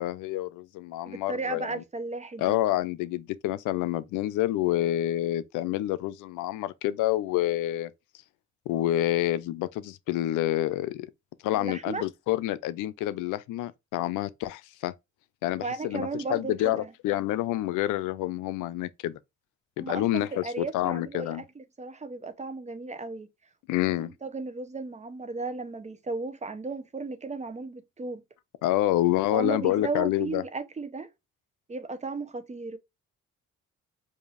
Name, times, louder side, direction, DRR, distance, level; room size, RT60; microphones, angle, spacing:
voice 1, 0.0-1.8 2.4-7.9 8.7-11.1 11.4-14.9 15.4-19.2 19.8-21.4 23.7-24.1 28.6-30.4, left 14 dB, 90° left, 0.5 m, -28 dB
voice 2, 1.1-2.6 11.5-12.0 15.6-16.9 19.8-23.3 24.2-28.2 29.3-31.1 31.7-32.8, right 3 dB, 25° right, 0.7 m, -35 dB
4.9 x 2.6 x 2.4 m
cardioid pair, 90°, 30 cm